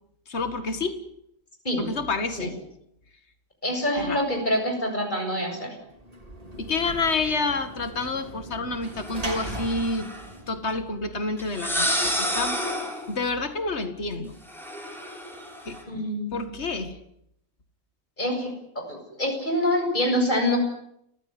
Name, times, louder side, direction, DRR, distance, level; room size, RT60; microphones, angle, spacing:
voice 1, 0.3-1.0 1.8-2.5 4.0-4.2 6.6-10.1 10.5-12.6 13.1-14.4 15.7-15.8 16.3-17.0, left 3 dB, 55° left, 9 dB, 2.3 m, -28 dB
voice 2, 3.6-5.7 15.9-16.4 18.2-20.6, left 1 dB, 35° left, 3 dB, 7.9 m, -26 dB
Sliding door / Slam, 5.9-11.3, right 1 dB, 25° right, 4.5 m, -39 dB
sound 1, 9.0-10.3 11.4-13.1 14.5-15.8, equal, ahead, 5.8 m, -30 dB
30.0 x 15.5 x 9.7 m, 0.77 s
omnidirectional pair, 1.4 m